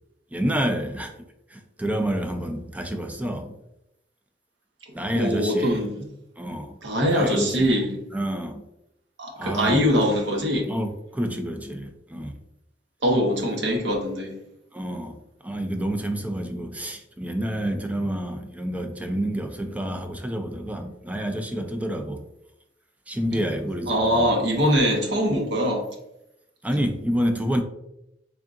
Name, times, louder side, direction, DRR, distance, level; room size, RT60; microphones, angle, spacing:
voice 1, 0.3-1.2 1.5-3.5 4.9-5.8 6.4-6.8 7.1-7.7 8.1-8.6 9.4-10.0 10.7-12.3 14.7-22.2 23.1-24.3 26.6-27.6, equal, 10° right, 6 dB, 0.4 m, -28 dB
voice 2, 5.1-6.1 6.8-8.0 9.2-10.7 13.0-14.3 23.9-25.9, equal, 70° right, 1 dB, 0.9 m, -22 dB
3.6 x 3.6 x 2.4 m, 0.86 s
head